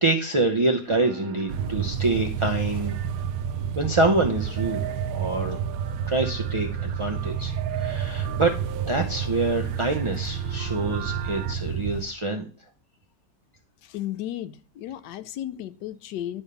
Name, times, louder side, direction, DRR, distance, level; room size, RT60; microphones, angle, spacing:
voice 1, 0.0-3.0 3.7-4.8 5.1-5.6 6.1-12.5, right 2 dB, 40° right, 0.4 m, -26 dB
sound 1, 0.9-11.5, right 11 dB, 70° right, 0.9 m, -40 dB
sound 2, 1.5-12.1, right 8 dB, 85° right, 1.3 m, -30 dB
voice 2, 13.8-16.4, left 12 dB, 80° left, 1.2 m, -34 dB
9.8 x 3.5 x 6.7 m
omnidirectional pair, 1.8 m